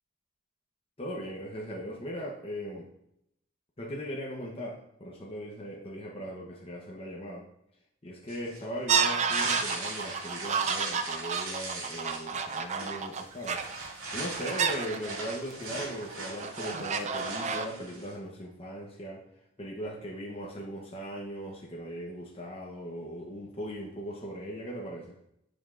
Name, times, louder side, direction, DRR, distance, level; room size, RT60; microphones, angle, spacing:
voice 1, 1.0-2.9 3.8-7.5 8.0-13.6 14.1-19.2 19.6-25.1, equal, 25° left, -2 dB, 0.9 m, -39 dB
sound 1, 8.3-18.2, right 3 dB, 75° right, 2.2 m, -39 dB
sound 2, 8.9-15.5 16.0-17.7, right 6 dB, 30° right, 0.4 m, -30 dB
10.0 x 5.6 x 2.5 m, 0.77 s
head